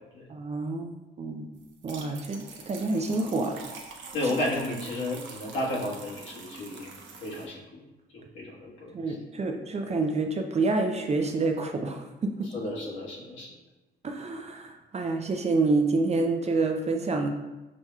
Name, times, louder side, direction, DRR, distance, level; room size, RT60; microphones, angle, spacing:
voice 1, 0.3-1.5 1.8-3.6 4.2-4.3 8.9-12.4 14.0-17.3, right 3 dB, 35° right, 4 dB, 0.5 m, -28 dB
sound 1, 1.6-7.5, right 4 dB, 70° right, 0.7 m, -45 dB
voice 2, 4.1-7.8 8.1-9.2 12.4-13.5, left 1 dB, 75° left, -5 dB, 1.5 m, -33 dB
6.1 x 2.9 x 2.3 m, 1.1 s
cardioid pair, 90°, 20 cm